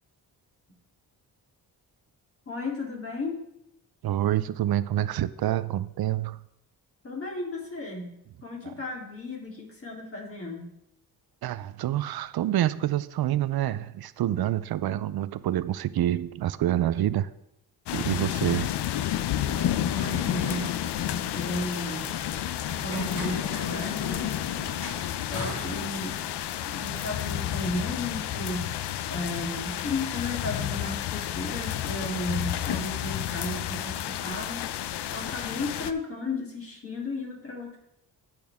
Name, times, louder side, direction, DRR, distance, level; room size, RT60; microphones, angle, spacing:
voice 1, 2.5-3.4 7.0-8.1 8.4-10.7 19.4-20.7 21.3-22.1 22.8-24.4 25.3-26.3 26.6-28.7 29.1-34.7 35.1-37.8, left 2 dB, 35° left, -2 dB, 3.3 m, -34 dB
voice 2, 4.0-6.4 8.6-8.7 11.4-17.3 17.9-18.7, right 12 dB, 65° right, 16 dB, 0.6 m, -27 dB
sound 1, 17.9-35.9, left 11 dB, 85° left, 0.6 m, -31 dB
Sonicsnaps-OM-FR-tourniquet-metro, 18.3-26.4, left 2 dB, 55° left, 3.4 m, -41 dB
17.5 x 6.1 x 3.6 m, 0.83 s
cardioid pair, 100°, 40 cm